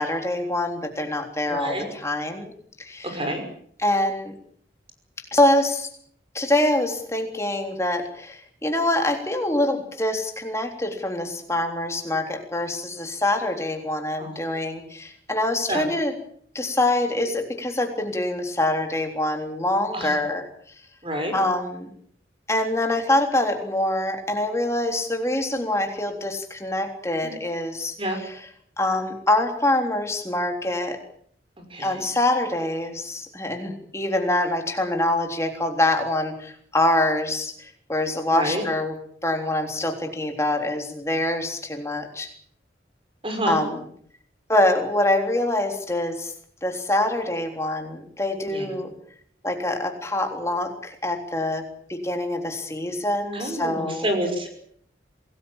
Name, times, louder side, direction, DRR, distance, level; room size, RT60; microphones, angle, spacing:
voice 1, 0.0-2.5 2.8-3.2 3.8-4.3 5.3-5.9 6.3-16.1 16.5-20.4 21.3-21.9 22.5-28.4 28.8-31.0 31.8-38.9 39.2-42.3 43.5-43.8 44.5-46.3 46.6-48.9 49.4-51.6 51.9-54.1, left 1 dB, 15° left, 4 dB, 3.6 m, -25 dB
voice 2, 1.5-1.9 3.1-3.4 14.2-14.4 15.7-15.9 19.9-20.2 21.0-21.4 27.2-27.3 28.0-28.2 31.7-32.0 38.3-38.6 43.2-43.6 48.5-48.9 53.3-54.5, right 1 dB, 30° right, 5 dB, 5.7 m, -28 dB
26.5 x 19.0 x 7.3 m, 0.62 s
head